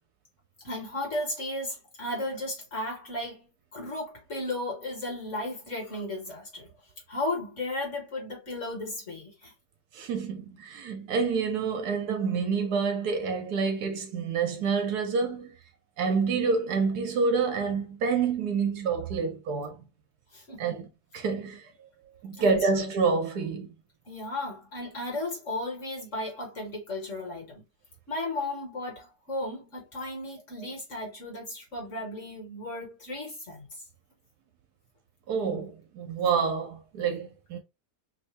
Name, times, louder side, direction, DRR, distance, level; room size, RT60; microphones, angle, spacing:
voice 1, 0.6-6.7 7.1-9.5 20.3-20.9 22.4-22.8 24.1-27.6 28.1-33.7, left 2 dB, 45° left, 1.9 m, -35 dB
voice 2, 9.9-15.6 16.0-19.8 20.6-20.8 21.1-21.6 22.2-23.7 35.3-37.6, right 5 dB, 70° right, 1.3 m, -28 dB
3.4 x 2.7 x 3.3 m
omnidirectional pair, 1.8 m